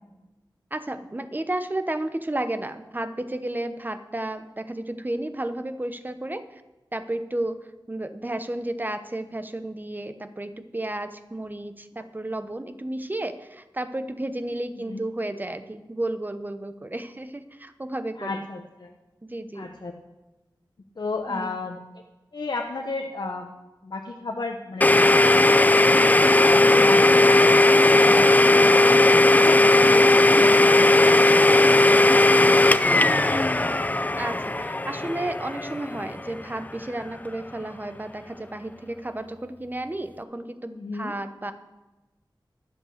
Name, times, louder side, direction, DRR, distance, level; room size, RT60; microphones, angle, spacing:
voice 1, 0.7-6.6 6.9-18.3 19.2-19.7 21.3-21.6 30.3-30.6 34.2-41.5, right 1 dB, 25° right, 10 dB, 0.8 m, -32 dB
voice 2, 18.2-18.9 19.5-19.9 21.0-21.8 22.3-23.5 23.8-26.1 26.5-31.2 31.7-34.0 40.7-41.1, left 3 dB, 65° left, 1 dB, 1.0 m, -34 dB
Domestic sounds home sounds, 24.8-36.5, left 2 dB, 20° left, 0.5 m, -17 dB
11.5 x 7.7 x 6.6 m, 1.1 s
wide cardioid pair, 65°, 8 cm